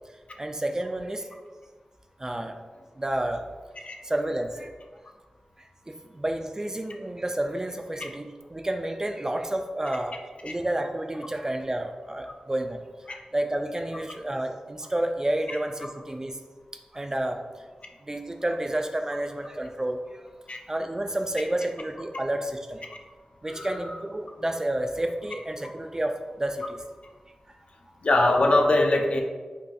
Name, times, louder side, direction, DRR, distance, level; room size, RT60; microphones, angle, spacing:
voice 1, 0.4-1.3 2.2-2.5 3.0-3.4 4.0-4.7 5.6-16.4 16.9-17.4 18.0-20.3 20.7-22.9 23.4-26.8 27.5-27.6, right 1 dB, 25° right, 5 dB, 0.3 m, -30 dB
voice 2, 23.5-24.0 28.0-29.2, left 2 dB, 55° left, 3 dB, 0.5 m, -22 dB
5.1 x 2.6 x 2.3 m, 1.4 s
wide cardioid pair, 60°, 2 cm